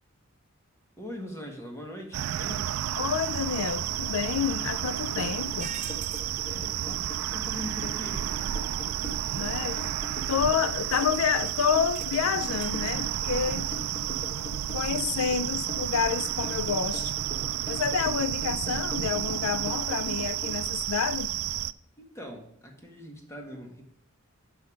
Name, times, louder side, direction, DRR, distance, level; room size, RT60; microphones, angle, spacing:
voice 1, 1.0-2.7 6.2-8.2 22.0-23.8, left 1 dB, 15° left, 1.7 m, -41 dB
sound 1, 2.1-21.7, right 12 dB, 85° right, 0.3 m, -31 dB
voice 2, 3.0-5.7 9.4-9.9 10.3-13.7 14.7-17.1 17.7-21.3, left 7 dB, 75° left, 0.4 m, -29 dB
sound 2, 5.2-20.6, left 2 dB, 35° left, 1.3 m, -41 dB
sound 3, 5.6-6.3 9.0-9.3 9.8-9.9 10.2-10.4 10.9-12.9, right 8 dB, 35° right, 0.6 m, -45 dB
6.6 x 5.8 x 5.0 m
head